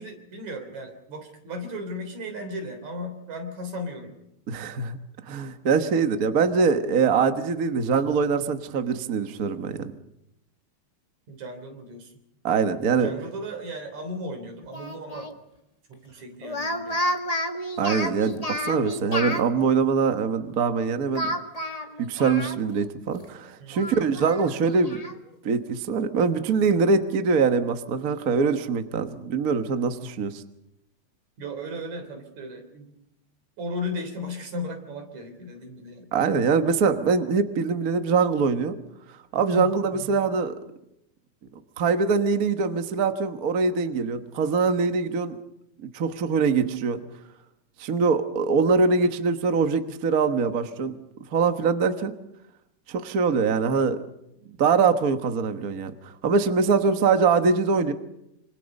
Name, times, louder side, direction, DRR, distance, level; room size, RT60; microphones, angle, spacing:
voice 1, 0.0-4.1 11.3-12.1 13.0-15.3 15.9-17.0 23.6-24.0 31.4-32.9 33.6-36.0 39.5-40.2, left 1 dB, 70° right, 5 dB, 4.9 m, -35 dB
voice 2, 4.5-5.0 5.3-9.8 12.4-13.1 17.8-21.3 22.0-25.0 25.4-30.4 36.1-38.7 39.3-40.5 41.8-45.4 45.8-47.0 47.8-50.9 51.3-52.1 52.9-54.0 54.6-57.9, right 5 dB, 50° right, 7 dB, 1.1 m, -23 dB
Speech, 14.7-15.3 16.4-19.5 21.2-22.9 23.2-23.3 23.7-25.2, left 1 dB, 25° left, 0.8 m, -31 dB
26.5 x 25.5 x 5.4 m, 0.83 s
omnidirectional pair, 3.4 m